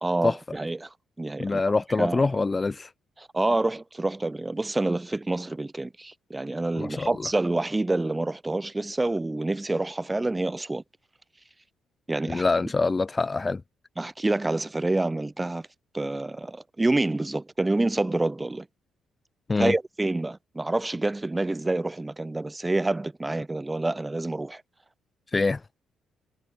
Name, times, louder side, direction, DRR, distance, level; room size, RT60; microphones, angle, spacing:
voice 1, 0.0-1.6 2.0-2.3 3.2-10.8 12.1-12.4 14.0-15.7 15.9-18.7 19.6-24.6, right 2 dB, 15° right, 1.3 m, -27 dB
voice 2, 1.4-2.9 6.8-7.1 12.3-13.6 19.5-19.7 25.3-25.6, left 3 dB, 25° left, 0.4 m, -25 dB
cardioid pair, 90°, 0 cm